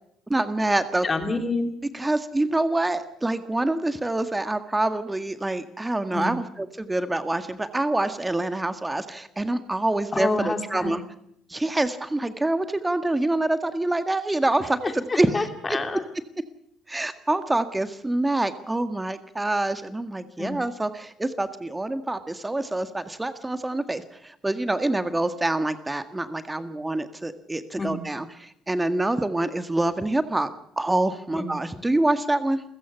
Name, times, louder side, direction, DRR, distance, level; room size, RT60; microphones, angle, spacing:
voice 1, 0.3-1.1 1.9-11.0 11.5-15.5 16.9-30.5 30.8-32.6, right 2 dB, 15° right, 10 dB, 1.8 m, -26 dB
voice 2, 1.0-1.7 6.1-6.4 10.1-11.0 14.8-16.0 20.4-20.6 27.8-28.0 31.3-31.5, left 3 dB, 25° left, 6 dB, 3.3 m, -28 dB
29.0 x 16.0 x 5.8 m, 0.74 s
figure-of-eight pair, 50°, 0 cm